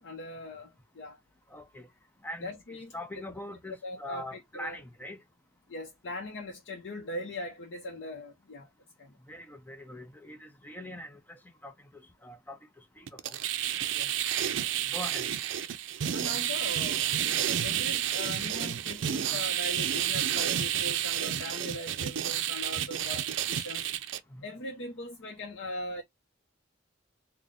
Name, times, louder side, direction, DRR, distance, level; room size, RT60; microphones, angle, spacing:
voice 1, 0.0-1.2 2.4-2.9 3.8-4.8 5.7-8.7 9.0-9.1 13.9-14.2 16.1-17.0 17.6-23.9 24.4-26.0, left 1 dB, 75° left, 0.7 m, -40 dB
voice 2, 1.5-1.8 2.2-2.5 2.9-5.2 9.3-11.1 11.6-11.7 12.2-12.6 14.9-15.3 24.3-24.4, left 1 dB, 10° left, 0.5 m, -42 dB
sound 1, 13.1-24.2, right 10 dB, 75° right, 0.4 m, -30 dB
3.8 x 2.2 x 3.5 m
head